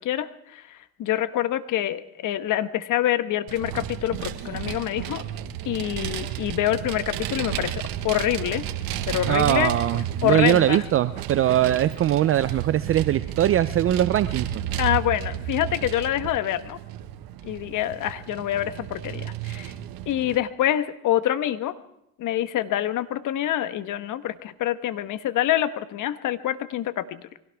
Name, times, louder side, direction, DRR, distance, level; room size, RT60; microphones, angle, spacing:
voice 1, 0.0-5.2 5.6-8.6 9.1-9.7 10.2-10.8 14.8-16.8 17.4-19.7 20.1-21.8 22.2-27.2, left 12 dB, 40° left, 12 dB, 1.2 m, -26 dB
Vehicle, 3.5-20.4, right 11 dB, 50° right, 1.4 m, -32 dB
voice 2, 9.3-14.6, right 12 dB, 30° right, 13 dB, 0.6 m, -21 dB
23.5 x 17.0 x 3.5 m, 0.80 s
hypercardioid pair, 90°, 46 cm